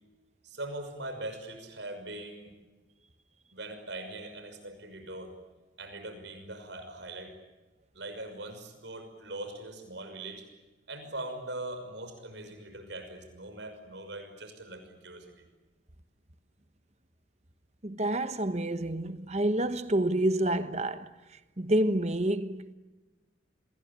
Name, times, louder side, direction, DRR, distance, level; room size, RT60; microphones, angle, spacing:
voice 1, 0.4-2.5 3.5-5.3 5.8-7.4 7.9-10.4 10.9-15.5, right 2 dB, 70° right, 6.0 m, -41 dB
voice 2, 17.8-21.1 21.6-22.7, right 1 dB, 35° right, 1.2 m, -28 dB
28.0 x 21.5 x 8.6 m
head